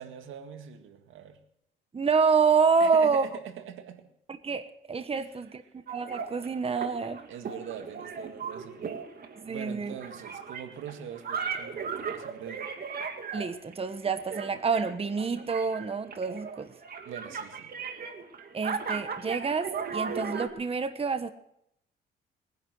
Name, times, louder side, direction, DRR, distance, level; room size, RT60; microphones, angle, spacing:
voice 1, 0.0-1.4 2.8-4.1 5.1-5.3 5.7-5.8 7.3-8.9 9.5-12.7 17.0-17.8, right 9 dB, 80° right, 7 dB, 2.0 m, -43 dB
voice 2, 1.9-3.3 4.4-7.3 9.4-9.9 13.3-16.7 18.5-21.3, right 5 dB, 30° right, 10 dB, 1.2 m, -27 dB
sound 1, 5.9-20.5, right 6 dB, 50° right, 2.4 m, -37 dB
22.0 x 10.5 x 6.2 m, 0.75 s
cardioid pair, 90°, 20 cm